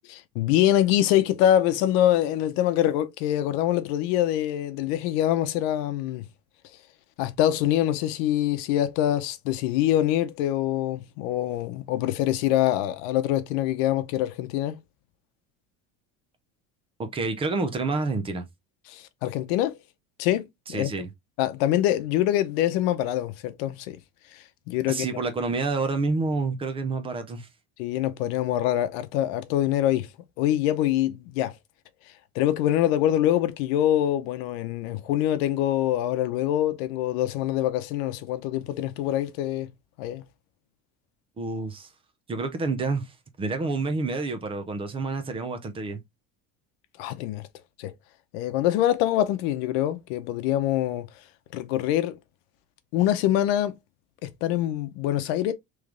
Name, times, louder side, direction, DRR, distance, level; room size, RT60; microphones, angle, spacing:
voice 1, 0.3-6.3 7.2-14.8 18.9-19.8 20.2-20.9 21.4-24.0 24.3-25.0 27.8-30.1 30.4-31.5 32.3-39.7 40.0-40.2 47.0-47.5 47.8-47.9 48.3-51.1 51.5-52.2 52.9-53.8 54.2-55.5, left 12 dB, 85° left, 0.7 m, -24 dB
voice 2, 17.0-18.5 20.7-21.1 24.9-27.5 41.4-41.9 42.3-46.0, right 3 dB, 20° right, 0.5 m, -28 dB
3.3 x 3.2 x 3.7 m
cardioid pair, 165°, 30 cm